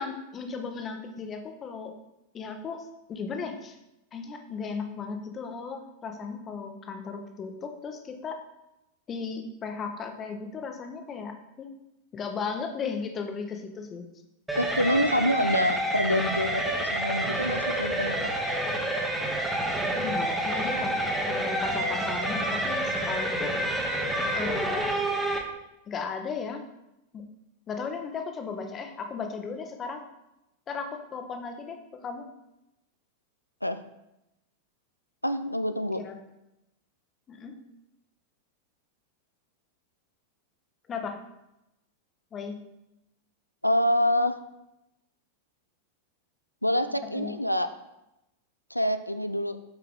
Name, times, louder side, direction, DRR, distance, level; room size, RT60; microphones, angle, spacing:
voice 1, 0.0-1.9 2.3-3.8 4.1-8.4 9.1-11.7 12.1-14.0 19.9-21.0 21.3-23.6 24.3-25.0 25.9-26.6 27.1-27.2 27.7-30.0 30.7-32.3 36.0-36.2 37.3-37.6 40.9-41.2 42.3-42.6 47.1-47.4, left 5 dB, 25° left, 5 dB, 1.0 m, -36 dB
sound 1, 14.5-25.4, right 1 dB, 5° right, 1.1 m, -28 dB
voice 2, 14.6-18.2 33.6-33.8 35.2-36.0 43.6-44.4 46.6-47.7 48.7-49.6, left 1 dB, 90° left, 10 dB, 0.4 m, -26 dB
8.6 x 4.6 x 3.7 m, 0.90 s
figure-of-eight pair, 90°, 0 cm